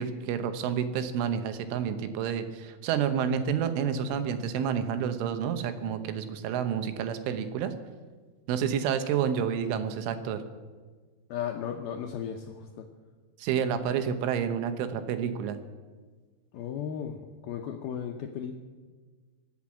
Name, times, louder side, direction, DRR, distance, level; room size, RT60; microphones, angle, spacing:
voice 1, 0.0-7.7 8.5-10.4 13.4-15.6, right 8 dB, 85° right, 9 dB, 3.5 m, -29 dB
voice 2, 11.3-12.9 16.5-18.6, left 8 dB, 80° left, 3 dB, 2.2 m, -35 dB
24.0 x 8.1 x 7.3 m, 1.4 s
omnidirectional pair, 5.5 m